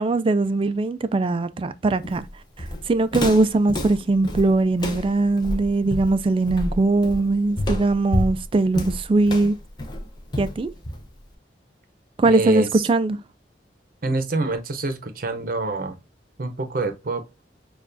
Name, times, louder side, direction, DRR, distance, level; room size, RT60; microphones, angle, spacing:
voice 1, 0.0-2.3 2.9-9.6 10.4-10.7 12.2-13.2, right 2 dB, 30° right, 0.3 m, -20 dB
Walk footsteps, 2.0-11.3, left 1 dB, 25° left, 0.7 m, -29 dB
voice 2, 12.2-12.9 14.0-16.0 16.4-17.2, right 2 dB, 50° right, 0.7 m, -26 dB
6.6 x 2.4 x 2.6 m
head